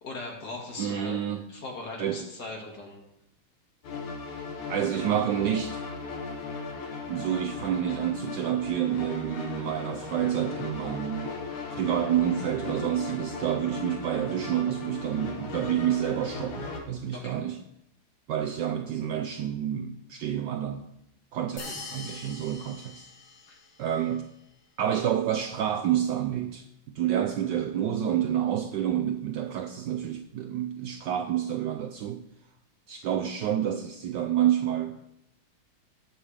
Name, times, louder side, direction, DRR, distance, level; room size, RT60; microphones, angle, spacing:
voice 1, 0.0-1.2 1.5-3.0 17.1-17.4 21.6-21.8 23.5-23.6, left 2 dB, 50° left, 2.4 m, -39 dB
voice 2, 0.8-1.4 2.0-2.2 4.7-5.8 7.1-11.4 11.8-17.6 18.3-20.9 21.3-23.1 23.8-24.3 24.8-26.7 26.9-32.2 32.9-35.0, right 10 dB, 75° right, 1.1 m, -28 dB
sound 1, 3.8-16.8, left 4 dB, 85° left, 2.2 m, -37 dB
sound 2, 21.6-23.9, left 3 dB, 70° left, 2.4 m, -43 dB
18.5 x 6.2 x 3.3 m
omnidirectional pair, 2.3 m